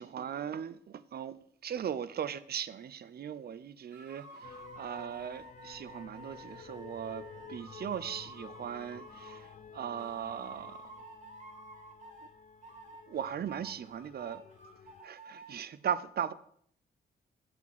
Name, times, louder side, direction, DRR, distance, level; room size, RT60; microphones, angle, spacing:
voice 1, 0.0-1.4 1.6-10.9 13.1-14.4 15.0-16.3, right 8 dB, 55° right, 0.6 m, -38 dB
sound 1, 3.9-9.6 10.0-12.3 12.6-15.5, right 2 dB, 40° right, 3.6 m, -51 dB
sound 2, 4.4-15.0, left 6 dB, 40° left, 0.5 m, -52 dB
7.7 x 5.1 x 7.4 m
cardioid pair, 70°, 19 cm